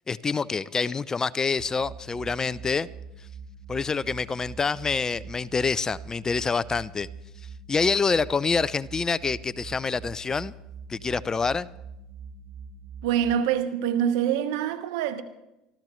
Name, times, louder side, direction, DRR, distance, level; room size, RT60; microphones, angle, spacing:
voice 1, 0.1-2.9 3.7-7.1 7.7-10.5 10.9-11.7, left 4 dB, 25° left, 0.5 m, -26 dB
sound 1, 1.6-13.4, right 5 dB, 45° right, 1.0 m, -43 dB
voice 2, 13.0-15.2, right 9 dB, 80° right, 1.1 m, -25 dB
26.0 x 13.5 x 3.2 m
supercardioid pair, 90°, 3 cm